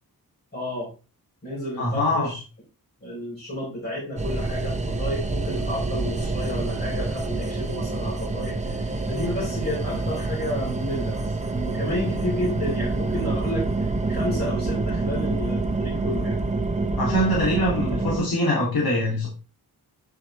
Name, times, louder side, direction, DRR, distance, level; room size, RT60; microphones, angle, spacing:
voice 1, 0.5-0.9 1.4-2.4 3.0-13.7 14.1-16.4, left 1 dB, 30° left, -8 dB, 4.7 m, -31 dB
voice 2, 1.8-2.3 17.0-19.3, left 1 dB, 65° left, -4 dB, 3.2 m, -23 dB
sound 1, 4.2-18.2, right 3 dB, 20° right, 1.0 m, -27 dB
9.4 x 7.6 x 3.5 m, 0.32 s
wide cardioid pair, 155°, 39 cm